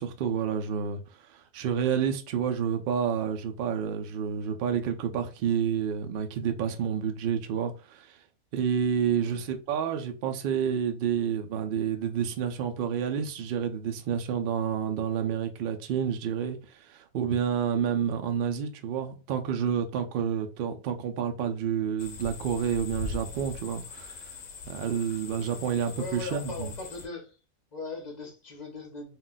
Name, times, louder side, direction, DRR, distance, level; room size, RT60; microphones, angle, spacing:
voice 1, 0.0-8.2 8.5-24.3 24.7-26.7, right 8 dB, 75° right, 0.5 m, -29 dB
voice 2, 9.1-9.4 25.9-27.4 27.7-29.2, left 3 dB, 40° left, 0.7 m, -39 dB
sound 1, 22.0-27.1, left 4 dB, 70° left, 0.9 m, -41 dB
2.4 x 2.2 x 3.8 m
omnidirectional pair, 1.4 m